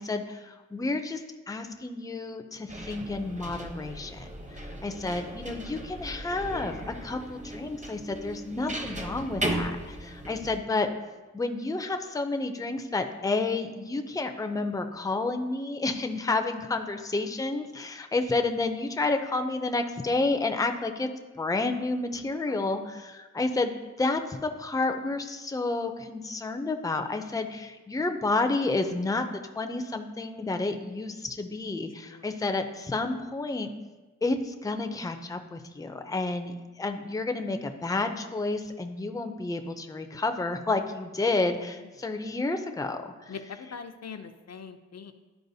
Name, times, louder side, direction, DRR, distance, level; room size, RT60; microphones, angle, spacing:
voice 1, 0.0-10.9 11.3-21.1 21.4-29.2 29.6-33.7 34.2-43.3, left 3 dB, 10° left, 6 dB, 0.5 m, -30 dB
sound 1, 2.7-10.6, right 1 dB, 25° right, 0.8 m, -37 dB
voice 2, 4.4-4.8 9.6-9.9 22.5-22.7 32.0-32.3 41.6-41.9 43.3-45.1, left 6 dB, 60° left, 8 dB, 0.5 m, -44 dB
11.5 x 4.6 x 2.7 m, 1.2 s
wide cardioid pair, 95°, 29 cm